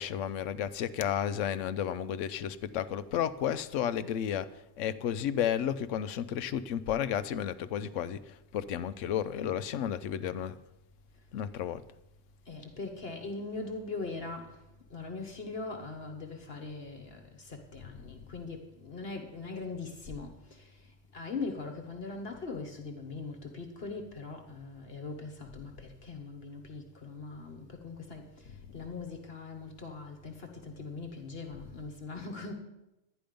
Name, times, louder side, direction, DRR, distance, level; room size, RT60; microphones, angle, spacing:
voice 1, 0.0-10.6 11.3-11.8 17.8-18.2 31.7-31.8, left 9 dB, 75° left, 1.0 m, -33 dB
voice 2, 12.5-14.6 14.9-20.7 21.1-28.3 28.7-32.5, left 3 dB, 50° left, 1.4 m, -41 dB
11.5 x 10.0 x 5.2 m
omnidirectional pair, 1.3 m